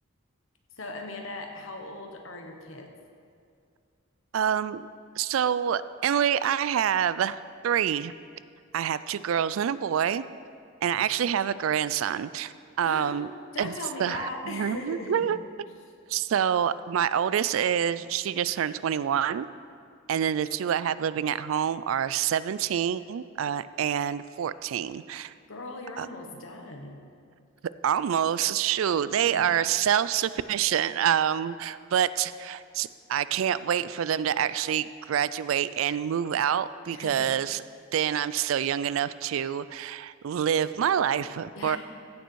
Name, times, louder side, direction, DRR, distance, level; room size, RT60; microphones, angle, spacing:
voice 1, 0.8-2.9 10.9-11.0 12.8-13.2 13.5-15.3 25.5-27.0 29.2-29.5 36.9-37.3 41.5-41.8, left 2 dB, 70° left, 3 dB, 1.3 m, -38 dB
voice 2, 4.3-4.9 5.2-8.1 8.7-10.3 10.8-13.3 13.6-13.7 14.0-15.4 16.1-19.5 20.1-25.3 26.0-26.1 27.8-37.6 37.9-41.8, right 9 dB, 75° right, 16 dB, 0.3 m, -27 dB
15.5 x 6.8 x 4.7 m, 2.3 s
head